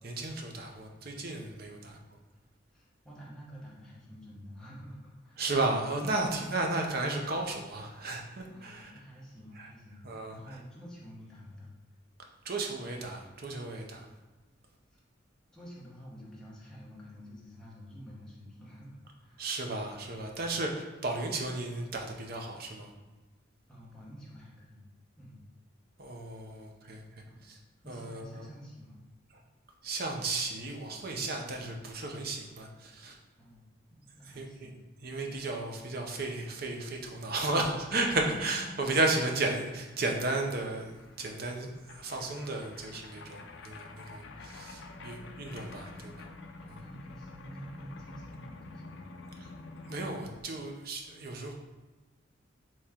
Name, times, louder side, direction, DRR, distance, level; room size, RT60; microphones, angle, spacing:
voice 1, 0.0-2.2 5.4-9.0 9.5-9.7 10.0-10.6 12.4-14.1 19.4-22.9 26.0-27.6 27.9-28.5 29.8-33.2 34.2-34.7 35.0-46.3 46.7-46.8 49.4-49.5 49.9-51.5, right 2 dB, 50° right, 2 dB, 0.6 m, -34 dB
voice 2, 2.7-5.4 8.4-11.7 14.9-15.0 15.5-19.5 23.7-24.8 25.2-25.4 27.3-27.5 27.8-29.0 31.1-31.3 33.4-34.8 44.9-45.3 46.6-49.0, equal, 5° left, -6 dB, 1.0 m, -49 dB
sound 1, 39.7-50.4, left 3 dB, 65° left, 0.4 m, -48 dB
4.3 x 3.1 x 3.6 m, 1.2 s
head